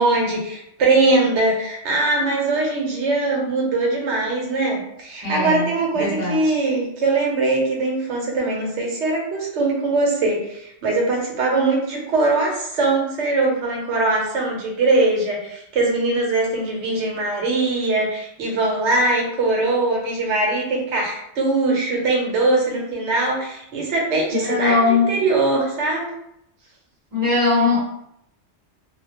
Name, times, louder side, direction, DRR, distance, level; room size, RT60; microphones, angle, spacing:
voice 1, 0.0-26.1, right 2 dB, 75° right, -1 dB, 1.0 m, -21 dB
voice 2, 5.2-5.7 6.0-6.5 24.3-25.2 27.1-27.8, left 3 dB, 40° right, -8 dB, 0.8 m, -20 dB
2.3 x 2.0 x 2.7 m, 0.76 s
omnidirectional pair, 1.2 m